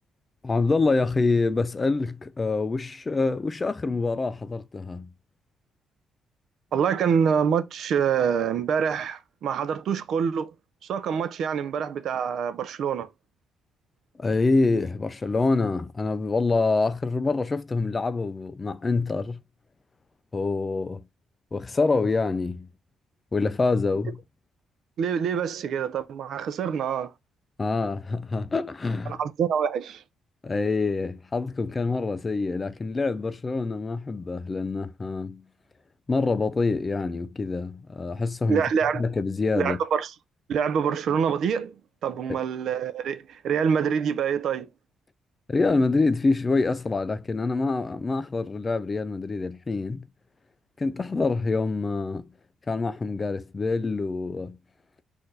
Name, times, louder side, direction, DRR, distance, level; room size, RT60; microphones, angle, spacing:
voice 1, 0.4-5.1 14.2-19.4 20.3-21.0 21.5-22.7 23.3-24.2 27.6-29.2 30.4-35.4 36.1-38.6 38.9-39.8 42.3-42.4 45.5-50.1 50.8-52.2 52.7-54.6, left 3 dB, 30° left, 0.4 m, -26 dB
voice 2, 6.7-10.5 10.9-13.1 25.0-27.1 29.1-30.0 38.5-39.0 39.6-40.1 40.5-41.7 42.0-44.7, right 7 dB, 70° right, 0.6 m, -26 dB
4.4 x 2.6 x 3.8 m
cardioid pair, 90°, 0 cm